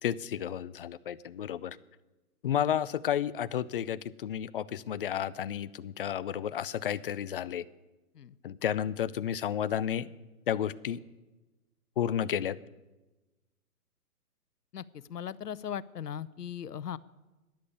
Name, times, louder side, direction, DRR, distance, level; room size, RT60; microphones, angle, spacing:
voice 1, 0.0-1.8 2.4-7.6 8.4-10.1 10.5-11.0 12.0-12.6, left 9 dB, 40° left, 17 dB, 0.5 m, -32 dB
voice 2, 14.7-17.0, left 9 dB, 85° left, 18 dB, 0.8 m, -38 dB
13.0 x 10.5 x 8.3 m, 1.1 s
hypercardioid pair, 135°, 46 cm